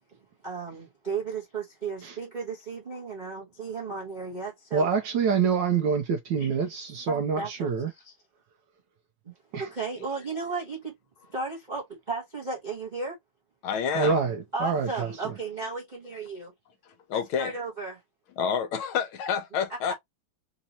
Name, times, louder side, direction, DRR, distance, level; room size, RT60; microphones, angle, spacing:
voice 1, 0.4-4.9 6.4-6.5 7.1-8.2 9.2-10.9 11.3-13.2 14.5-16.5 17.1-18.0 19.9-20.0, right 4 dB, 30° right, 1.0 m, -35 dB
voice 2, 4.7-7.9 9.5-9.7 13.9-15.1, right 6 dB, 70° right, 1.1 m, -26 dB
voice 3, 13.6-14.3 16.9-17.5 18.4-19.9, left 7 dB, 75° left, 1.6 m, -29 dB
4.0 x 2.7 x 2.8 m
omnidirectional pair, 2.4 m